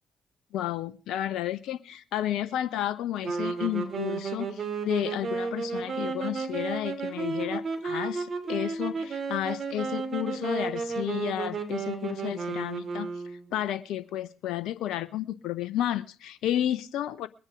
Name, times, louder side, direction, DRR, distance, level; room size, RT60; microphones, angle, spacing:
voice 1, 0.5-13.1 13.5-17.3, left 12 dB, 70° left, 16 dB, 0.6 m, -32 dB
sound 1, 3.2-13.6, right 4 dB, 50° right, 2.8 m, -33 dB
21.0 x 9.8 x 4.9 m, 0.38 s
hypercardioid pair, 45°, 0 cm